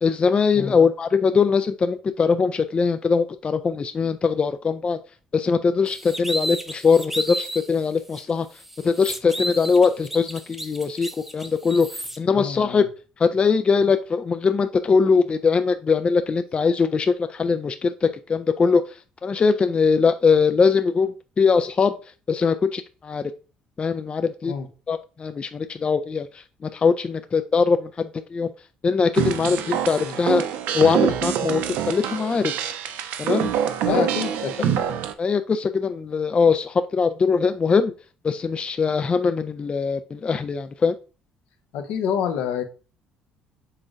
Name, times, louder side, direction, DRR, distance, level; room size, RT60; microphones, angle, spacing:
voice 1, 0.0-5.0 5.3-8.5 8.8-11.9 12.2-12.8 13.2-18.8 19.2-21.9 22.3-23.2 23.8-24.5 24.9-26.3 26.7-28.5 28.8-30.4 30.7-31.6 31.9-32.5 33.2-33.5 33.8-34.0 35.2-37.9 38.2-40.9, left 5 dB, 35° left, 9 dB, 0.3 m, -21 dB
Insulation Board Scraping Against Glass Various, 5.9-7.7 8.1-8.2 8.6-12.2, right 1 dB, 10° right, 0.7 m, -32 dB
voice 2, 12.3-12.9 24.5-24.7 30.0-30.2 33.9-34.8 41.7-42.6, left 8 dB, 75° left, 6 dB, 0.7 m, -27 dB
sound 1, 29.1-35.1, right 9 dB, 75° right, 0.4 m, -25 dB
5.6 x 3.9 x 2.4 m, 0.35 s
hypercardioid pair, 60°, 3 cm